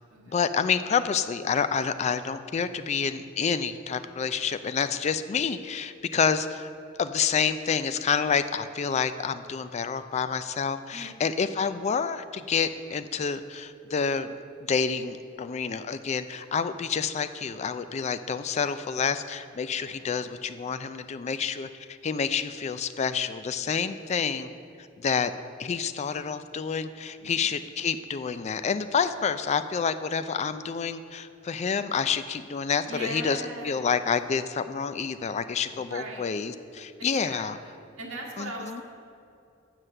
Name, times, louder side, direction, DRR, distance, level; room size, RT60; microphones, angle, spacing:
voice 1, 0.3-6.7 7.0-14.3 14.7-24.5 25.0-25.3 25.6-33.4 33.6-37.6 38.4-38.8, left 6 dB, 35° left, 11 dB, 0.3 m, -28 dB
voice 2, 10.9-11.2 19.7-20.1 23.6-23.8 27.2-27.4 32.8-33.9 35.6-36.3 37.0-38.8, right 1 dB, 80° right, -2 dB, 1.7 m, -40 dB
7.7 x 6.2 x 6.6 m, 2.5 s
head